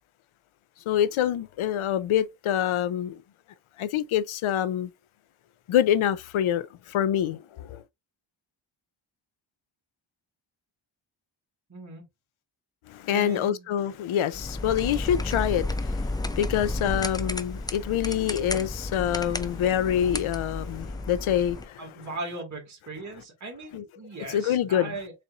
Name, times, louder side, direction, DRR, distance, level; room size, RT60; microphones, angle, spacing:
voice 1, 0.9-3.2 3.8-4.9 5.7-7.8 12.9-21.8 23.7-23.8 24.3-24.9, left 10 dB, 80° left, 0.6 m, -26 dB
voice 2, 11.7-12.0 13.1-13.7 21.8-25.1, right 2 dB, 35° right, 1.9 m, -38 dB
sound 1, 14.3-21.6, left 2 dB, 10° left, 0.3 m, -32 dB
4.2 x 4.1 x 2.4 m
cardioid pair, 75°, 48 cm